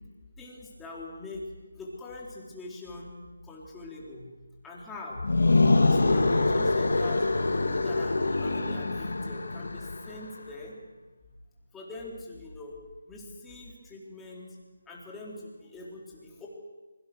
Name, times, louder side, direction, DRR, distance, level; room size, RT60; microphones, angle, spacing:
voice 1, 0.4-1.5 1.8-3.1 3.4-4.3 4.6-5.2 5.5-10.8 11.7-12.8 13.1-14.6 14.9-16.5, left 2 dB, 5° left, -4 dB, 4.1 m, -43 dB
sound 1, 5.1-10.2, left 2 dB, 75° left, 2.9 m, -25 dB
25.5 x 23.0 x 6.4 m, 1.2 s
figure-of-eight pair, 165°, 0 cm